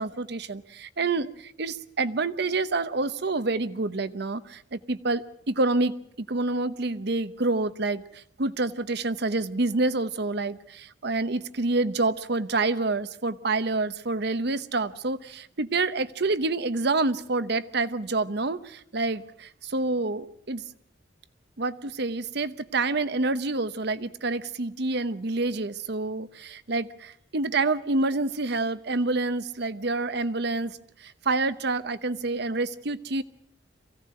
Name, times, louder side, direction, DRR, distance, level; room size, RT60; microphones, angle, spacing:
voice 1, 0.0-20.6 21.6-33.2, right 3 dB, 60° right, 13 dB, 0.9 m, -28 dB
23.5 x 16.5 x 7.7 m, 0.71 s
head